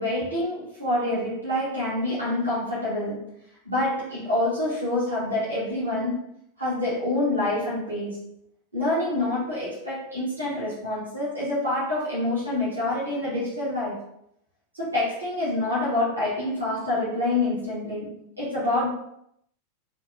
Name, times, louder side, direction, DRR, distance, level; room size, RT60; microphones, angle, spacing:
voice 1, 0.0-6.2 6.6-8.4 8.7-14.0 14.7-18.9, left 1 dB, 85° right, -9 dB, 1.1 m, -27 dB
2.8 x 2.7 x 2.7 m, 0.74 s
figure-of-eight pair, 90°, 0 cm